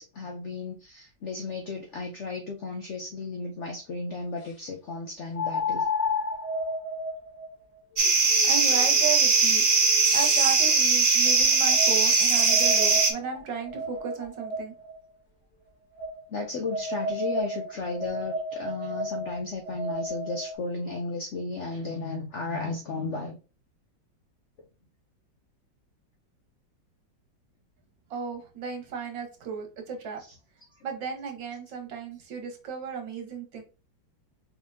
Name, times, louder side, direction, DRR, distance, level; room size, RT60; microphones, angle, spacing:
voice 1, 0.0-5.9 16.3-23.4, left 3 dB, 70° left, 3 dB, 0.6 m, -34 dB
sound 1, 2.7-2.8 5.3-10.5 11.2-14.9 16.0-20.6, left 1 dB, 40° left, 1.3 m, -33 dB
sound 2, 8.0-13.1, right 4 dB, 60° right, 0.4 m, -20 dB
voice 2, 8.5-9.7 10.1-14.7 28.1-30.2 30.8-33.6, right 6 dB, 80° right, 4 dB, 1.8 m, -34 dB
4.6 x 3.5 x 2.7 m, 0.32 s
omnidirectional pair, 2.0 m